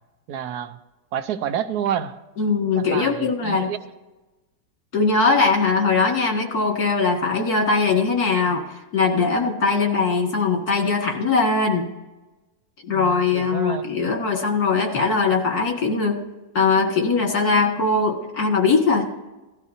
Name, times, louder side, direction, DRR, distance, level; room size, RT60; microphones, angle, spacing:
voice 1, 0.3-0.8 1.1-2.2 2.8-3.8 12.9-14.0, right 9 dB, 90° right, 1.3 m, -29 dB
voice 2, 2.4-3.7 4.9-11.9 12.8-16.2 16.5-19.1, left 4 dB, 75° left, 2.3 m, -21 dB
17.5 x 13.0 x 2.7 m
omnidirectional pair, 1.6 m